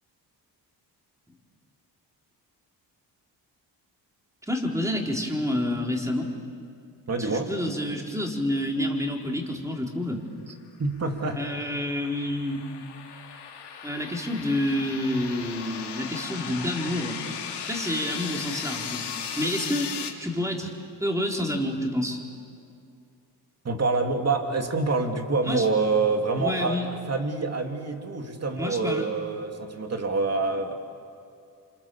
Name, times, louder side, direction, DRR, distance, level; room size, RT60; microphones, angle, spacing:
voice 1, 4.5-6.3 7.2-10.2 11.3-12.6 13.8-17.2 17.7-19.1 19.4-19.9 20.2-20.7 21.0-22.2 25.4-25.7 26.4-26.9 28.5-29.1, left 1 dB, 5° right, 0 dB, 4.3 m, -28 dB
voice 2, 7.1-7.5 10.8-11.4 23.6-30.8, right 3 dB, 35° right, 4 dB, 3.0 m, -26 dB
sound 1, 11.1-20.1, left 7 dB, 75° left, 2.9 m, -37 dB
29.0 x 26.0 x 7.2 m, 2.5 s
cardioid pair, 80°, 41 cm